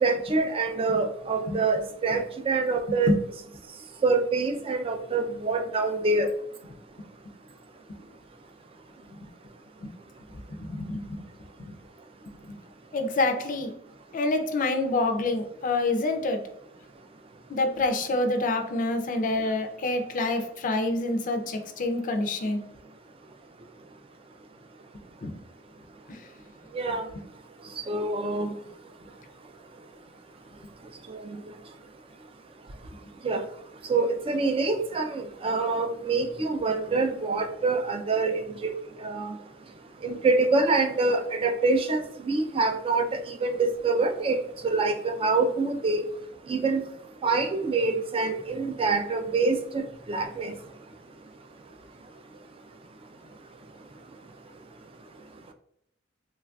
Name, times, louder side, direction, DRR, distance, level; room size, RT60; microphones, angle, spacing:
voice 1, 0.0-3.1 4.0-6.3 26.7-27.0 27.9-28.5 33.2-33.4 33.9-38.7 39.0-39.3 40.0-43.6 43.8-44.4 44.6-46.0 46.5-46.8 47.2-49.8 50.1-50.5, right 3 dB, 30° right, 6 dB, 0.3 m, -25 dB
voice 2, 10.7-11.2 11.6-11.7 12.9-13.7 14.1-16.4 17.5-22.6 25.2-25.3 26.1-26.2, left 2 dB, 40° left, 5 dB, 0.4 m, -27 dB
3.1 x 2.4 x 2.2 m, 0.75 s
head